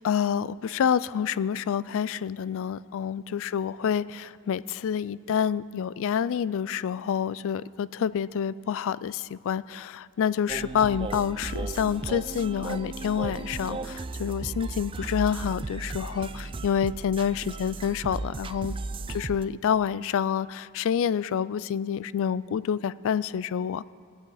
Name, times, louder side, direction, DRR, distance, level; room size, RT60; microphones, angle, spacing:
voice 1, 0.0-18.7 19.1-23.8, left 8 dB, 60° left, 18 dB, 0.3 m, -28 dB
sound 1, 10.5-19.4, right 3 dB, 25° right, 0.4 m, -35 dB
20.0 x 9.2 x 4.9 m, 2.2 s
head